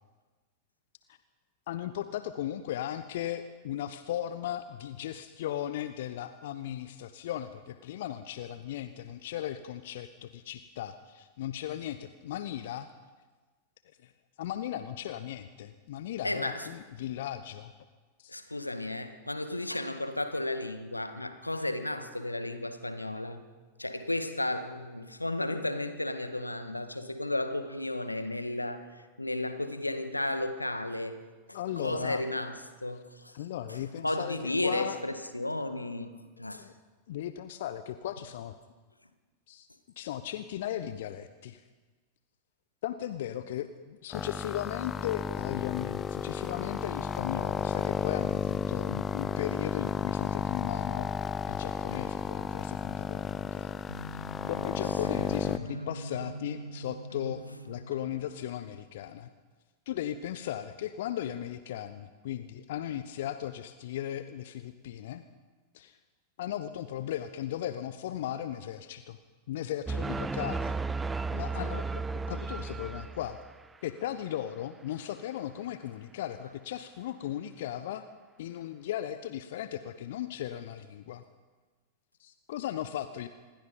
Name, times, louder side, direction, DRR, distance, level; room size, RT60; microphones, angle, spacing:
voice 1, 1.7-12.9 14.0-14.1 14.4-17.7 18.2-18.3 31.5-32.2 33.3-35.0 36.4-36.7 37.1-38.5 39.5-39.7 40.0-41.6 42.8-51.1 51.5-53.9 54.5-59.3 59.9-65.2 65.7-66.0 66.4-69.2 69.5-70.8 71.3-72.0 72.3-73.4 73.8-78.1 78.4-81.2 82.2-83.3, left 11 dB, 55° left, 12 dB, 1.0 m, -37 dB
voice 2, 16.2-16.7 18.3-23.4 23.8-28.9 29.2-31.2 31.5-33.4 33.7-33.8 34.0-36.1 36.4-36.7 55.1-55.2, left 1 dB, 85° left, 9 dB, 1.7 m, -33 dB
sound 1, 44.1-55.6, left 6 dB, 25° left, 0.7 m, -33 dB
sound 2, 53.9-58.4, equal, 85° right, 2.1 m, -42 dB
sound 3, 69.9-73.7, right 4 dB, 15° right, 0.8 m, -34 dB
26.5 x 21.0 x 5.5 m, 1.3 s
figure-of-eight pair, 90°, 0 cm